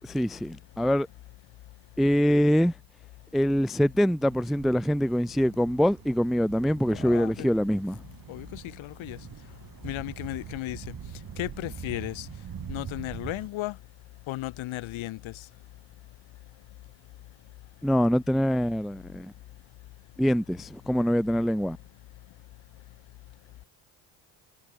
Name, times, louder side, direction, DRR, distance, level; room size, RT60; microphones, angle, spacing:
voice 1, 0.0-1.1 2.0-2.7 3.3-8.0 17.8-19.3 20.2-21.8, equal, ahead, 0.4 m, -24 dB
sound 1, 4.2-13.5, right 8 dB, 45° right, 2.4 m, -43 dB
voice 2, 6.9-7.5 8.3-9.2 9.8-10.9 11.4-12.3 12.7-13.8 14.3-15.3, left 17 dB, 70° left, 4.8 m, -35 dB
hypercardioid pair, 60°, 48 cm